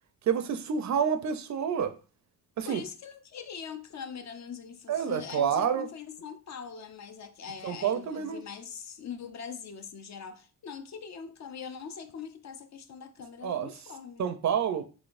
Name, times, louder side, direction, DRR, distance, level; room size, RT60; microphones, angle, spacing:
voice 1, 0.2-1.9 2.6-2.8 4.9-5.9 7.6-8.4 13.4-13.7 14.2-14.9, right 7 dB, 50° right, 0.4 m, -28 dB
voice 2, 2.7-14.2, left 6 dB, 45° left, 0.5 m, -42 dB
4.0 x 3.0 x 2.4 m
cardioid pair, 90°, 39 cm